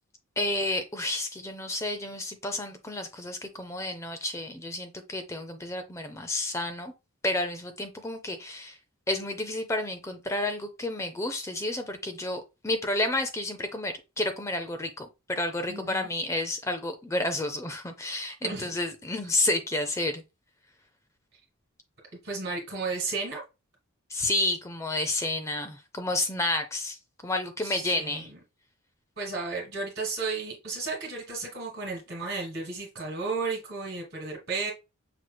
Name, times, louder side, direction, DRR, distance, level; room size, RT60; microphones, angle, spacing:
voice 1, 0.4-6.9 7.2-8.8 9.1-20.2 24.1-27.0 27.2-28.3, left 2 dB, 15° left, 0.5 m, -30 dB
voice 2, 15.7-16.1 18.4-18.7 22.2-23.4 27.6-28.3 29.2-34.7, right 4 dB, 55° right, 2.0 m, -33 dB
5.9 x 3.2 x 2.2 m
head